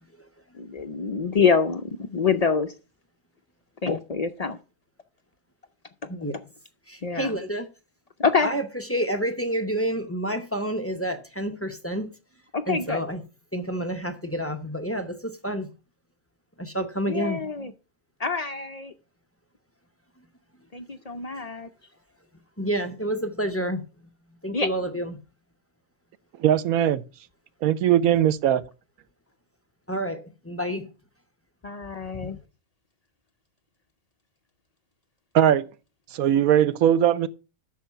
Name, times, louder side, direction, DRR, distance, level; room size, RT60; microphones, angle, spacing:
voice 1, 0.5-2.7 3.8-4.6 6.0-6.1 7.0-7.4 8.2-8.5 12.5-13.0 17.1-17.7 18.2-18.9 20.7-21.7 24.5-24.7 31.6-32.4, left 5 dB, 65° left, 0.3 m, -26 dB
voice 2, 6.9-7.7 8.4-12.1 12.7-13.2 13.5-15.7 16.6-17.4 22.6-23.9 24.4-25.2 29.9-30.9 32.1-32.3, right 1 dB, 15° left, 0.6 m, -29 dB
voice 3, 26.4-27.0 27.6-28.6 35.3-35.7 36.1-37.3, right 10 dB, 85° right, 1.1 m, -20 dB
9.3 x 6.3 x 5.6 m
omnidirectional pair, 1.5 m